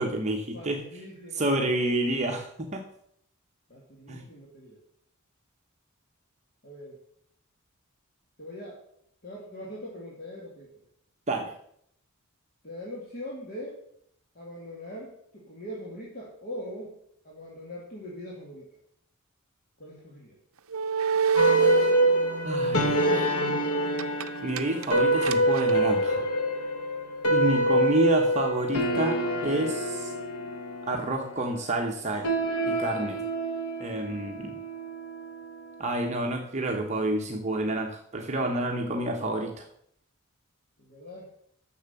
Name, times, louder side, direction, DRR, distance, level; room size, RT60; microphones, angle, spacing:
voice 1, 0.0-0.8 1.3-2.8 4.1-4.2 11.3-11.5 22.4-23.3 24.4-26.2 27.3-30.1 30.9-32.3 32.6-33.2 33.8-34.6 35.8-39.7, right 1 dB, 30° right, 2 dB, 1.0 m, -29 dB
voice 2, 0.5-1.6 3.7-4.8 6.6-7.0 8.4-8.8 9.2-10.7 12.6-13.8 14.3-16.9 17.2-18.7 19.8-20.4 40.8-41.3, left 1 dB, 45° left, -3 dB, 2.2 m, -41 dB
sound 1, 20.7-22.1 24.0-24.3 24.6-25.7, right 7 dB, 65° right, 0.6 m, -26 dB
sound 2, 21.4-35.9, right 1 dB, 85° left, 1.5 m, -26 dB
10.5 x 6.9 x 6.8 m, 0.71 s
head